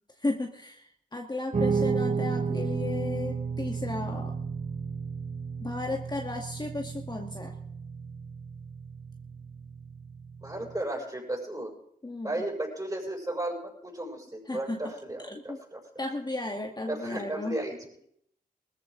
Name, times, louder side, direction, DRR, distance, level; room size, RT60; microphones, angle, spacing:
voice 1, 0.2-4.3 5.6-7.6 12.0-12.5 14.5-14.9 15.3-15.6 16.0-17.6, left 2 dB, 25° left, 1 dB, 1.7 m, -34 dB
Guitar, 1.5-10.8, right 5 dB, 55° right, 1.8 m, -33 dB
voice 2, 10.4-11.7 12.2-15.8 16.9-17.9, right 1 dB, 20° right, -1 dB, 6.6 m, -34 dB
19.5 x 14.0 x 3.8 m, 0.70 s
cardioid pair, 50°, 17 cm